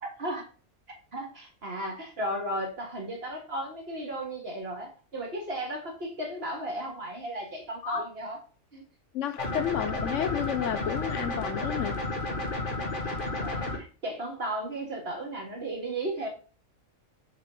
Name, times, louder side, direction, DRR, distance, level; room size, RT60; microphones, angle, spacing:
voice 1, 0.0-0.5 1.1-8.4 8.7-8.8 12.7-13.7 14.0-16.3, right 1 dB, 45° right, 2.2 m, -35 dB
voice 2, 9.1-12.0, left 10 dB, 70° left, 0.8 m, -31 dB
sound 1, 9.4-13.8, left 2 dB, 40° left, 1.8 m, -32 dB
6.8 x 6.3 x 3.7 m
omnidirectional pair, 1.4 m